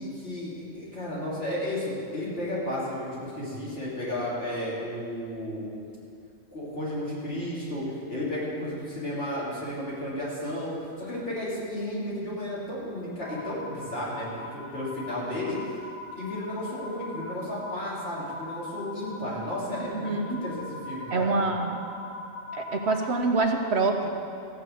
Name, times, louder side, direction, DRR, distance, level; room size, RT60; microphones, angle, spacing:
voice 1, 0.0-5.7 6.5-15.6 16.2-21.5, left 1 dB, 55° left, -8 dB, 3.9 m, -33 dB
sound 1, 13.2-23.3, left 2 dB, 35° left, 3.3 m, -41 dB
voice 2, 19.7-20.4 21.1-21.8 22.6-24.1, right 3 dB, 65° right, 3 dB, 1.2 m, -26 dB
15.0 x 6.8 x 8.4 m, 2.4 s
omnidirectional pair, 1.2 m